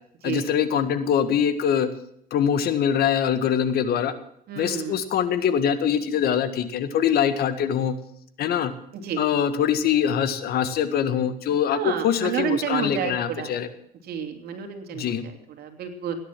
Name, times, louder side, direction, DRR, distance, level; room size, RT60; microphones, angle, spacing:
voice 1, 0.2-1.9 2.3-4.1 4.6-7.9 8.4-8.7 9.2-13.7 14.9-15.2, left 8 dB, 70° left, 11 dB, 1.8 m, -23 dB
voice 2, 4.5-5.0 8.9-9.2 11.7-13.6 14.0-16.2, right 8 dB, 65° right, 5 dB, 3.2 m, -30 dB
17.5 x 10.5 x 7.7 m, 0.71 s
cardioid pair, 110°, 17 cm